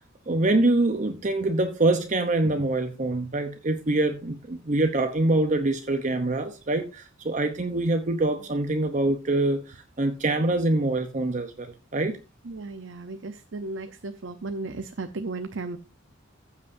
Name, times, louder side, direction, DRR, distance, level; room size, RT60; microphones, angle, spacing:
voice 1, 0.3-12.2, right 2 dB, 40° right, 0.8 m, -25 dB
voice 2, 12.4-15.8, right 3 dB, 65° right, 0.7 m, -35 dB
15.0 x 8.2 x 2.6 m
head